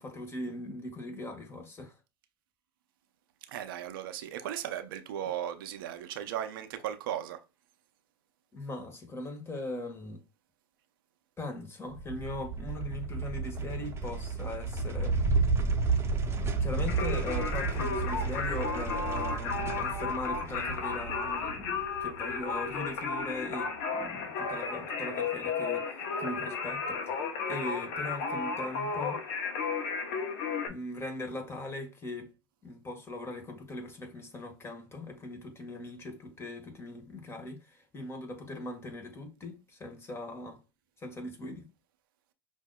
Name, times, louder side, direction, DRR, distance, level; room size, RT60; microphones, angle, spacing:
voice 1, 0.0-2.0 8.5-10.2 11.4-15.4 16.6-29.3 30.7-32.3 32.6-40.6 41.0-41.7, left 2 dB, 20° left, 1.4 m, -40 dB
voice 2, 3.5-7.4, right 10 dB, 75° right, 0.6 m, -36 dB
sound 1, 11.9-22.5, right 4 dB, 25° right, 0.9 m, -32 dB
Singing, 16.9-30.7, left 5 dB, 65° left, 0.9 m, -34 dB
5.6 x 2.6 x 2.2 m
hypercardioid pair, 95°, 12 cm